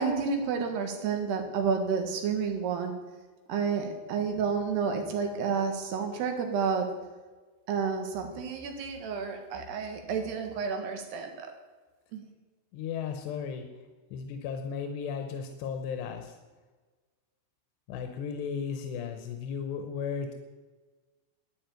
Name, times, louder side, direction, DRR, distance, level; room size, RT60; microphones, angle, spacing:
voice 1, 0.0-2.9 3.5-6.9 7.7-11.5 12.1-12.2, right 5 dB, 75° right, 5 dB, 3.7 m, -30 dB
voice 2, 12.7-13.7 14.1-16.4 17.9-20.3, left 6 dB, 90° left, 5 dB, 3.2 m, -35 dB
11.5 x 9.7 x 9.3 m, 1.3 s
omnidirectional pair, 4.8 m